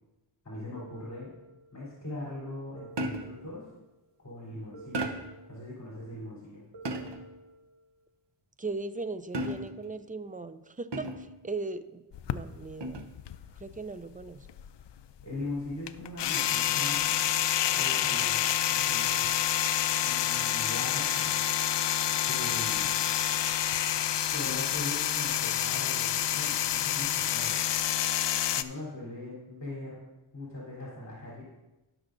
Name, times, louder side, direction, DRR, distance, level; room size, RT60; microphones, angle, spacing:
voice 1, 0.4-1.3 1.7-3.7 4.2-5.1 5.5-6.6 15.2-17.0 17.8-19.3 20.0-21.4 22.2-23.0 24.3-27.6 28.5-30.0 30.3-31.5, left 2 dB, 30° left, -7 dB, 3.5 m, -40 dB
sound 1, 0.7-1.9 2.7-3.9 4.7-5.9 6.7-7.9, right 1 dB, 75° right, 2.1 m, -51 dB
sound 2, 3.0-3.5 4.9-5.5 6.8-7.4 9.3-9.9 10.9-11.4 12.8-13.2, right 1 dB, 55° right, 1.1 m, -35 dB
voice 2, 8.6-12.0 12.3-13.1 13.6-14.5 17.7-18.2, right 3 dB, 20° right, 12 dB, 0.4 m, -38 dB
sound 3, 12.1-13.9 14.2-28.6, left 11 dB, 60° left, 0.5 m, -28 dB
18.0 x 6.2 x 2.6 m, 1.0 s
wide cardioid pair, 85°, 49 cm